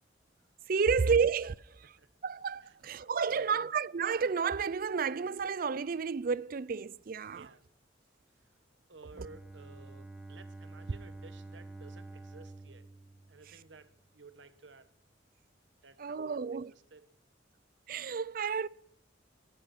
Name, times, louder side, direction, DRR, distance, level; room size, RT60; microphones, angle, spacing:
voice 1, 0.7-1.8 2.2-7.5 16.0-16.7 17.9-18.7, right 5 dB, 50° right, 0.5 m, -31 dB
voice 2, 3.3-3.7 7.3-7.7 8.9-12.9 13.3-14.9 15.8-17.1, right 3 dB, 80° right, 1.3 m, -55 dB
Bowed string instrument, 9.1-14.0, right 2 dB, ahead, 2.8 m, -49 dB
18.0 x 11.0 x 6.0 m
head